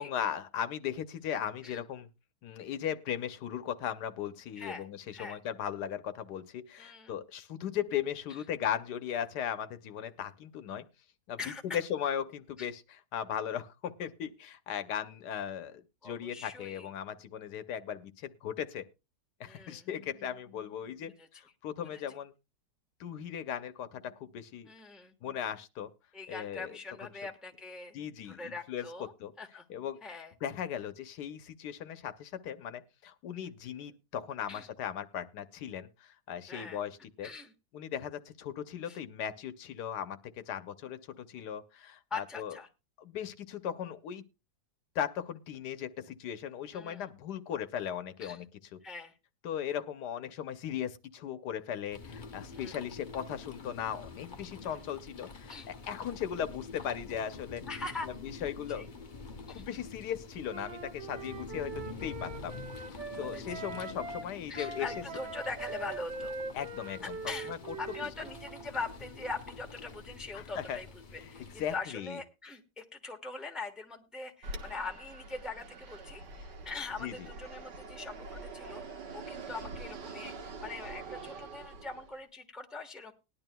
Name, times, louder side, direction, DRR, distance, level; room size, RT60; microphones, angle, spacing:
voice 1, 0.0-2.1 2.4-10.8 11.3-11.4 11.7-18.9 19.4-22.3 23.0-24.7 25.2-25.9 26.3-27.1 27.9-29.3 29.7-30.0 30.4-37.3 37.7-42.6 43.0-44.2 44.9-48.5 48.7-48.8 49.4-57.6 58.1-58.9 59.5-62.6 63.2-65.0 66.5-67.2 67.5-67.7 70.3-70.8 71.2-71.3 71.6-72.2 77.0-77.3, left 9 dB, 75° left, 11 dB, 1.3 m, -37 dB
voice 2, 6.8-7.1 11.4-11.8 12.6-12.7 16.0-16.9 19.5-19.8 21.2-21.3 21.9-22.0 24.6-25.1 26.1-28.0 28.2-29.1 29.4-29.6 30.0-30.3 34.5-34.7 36.5-36.8 37.2-37.5 38.9-39.0 42.1-42.7 46.7-47.1 48.2-48.4 48.8-49.1 52.5-52.8 54.7-54.8 55.5-55.7 57.7-58.1 58.7-58.9 59.5-59.7 63.1-63.6 64.5-66.3 67.3-67.5 67.8-70.9 71.1-83.1, left 3 dB, ahead, 3 dB, 0.9 m, -42 dB
sound 1, 51.9-71.8, left 4 dB, 45° left, 0.6 m, -47 dB
Wind instrument woodwind instrument, 60.5-64.3 64.5-68.7, right 3 dB, 50° right, 1.3 m, -42 dB
Fixed-wing aircraft airplane, 74.4-82.2, right 3 dB, 85° right, 1.9 m, -45 dB
19.5 x 11.0 x 2.2 m, 0.26 s
omnidirectional pair, 1.8 m